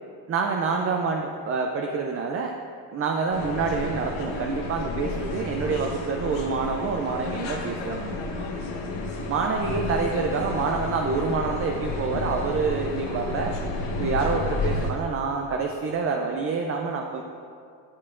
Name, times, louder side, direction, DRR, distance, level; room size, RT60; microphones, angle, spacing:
voice 1, 0.3-2.5 2.9-8.1 9.3-13.5 14.0-17.2, right 4 dB, 30° right, 2 dB, 0.4 m, -27 dB
Moscow monorail Interior, 3.3-14.9, left 2 dB, 70° left, 1.4 m, -31 dB
11.0 x 6.7 x 2.5 m, 2.4 s
cardioid pair, 110°, 47 cm